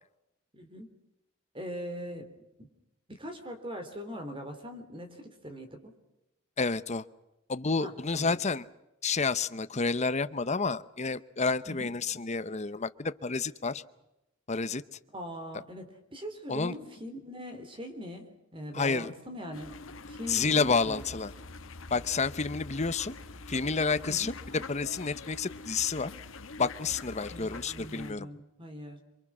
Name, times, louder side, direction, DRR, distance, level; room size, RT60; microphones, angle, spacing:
voice 1, 0.5-0.9 1.5-2.7 3.1-5.9 7.8-8.4 11.6-11.9 15.1-19.7 20.1-21.0 24.0-24.3 27.3-29.0, equal, 25° right, 6 dB, 3.3 m, -41 dB
voice 2, 6.6-7.0 7.5-8.6 9.0-13.8 14.5-14.8 16.5-16.7 18.7-19.1 20.3-21.3 21.9-23.1 23.5-26.1 26.6-28.3, left 4 dB, 35° left, 13 dB, 0.8 m, -30 dB
sound 1, 19.5-28.1, left 3 dB, 75° left, 1.2 m, -45 dB
27.5 x 23.5 x 6.2 m, 0.91 s
head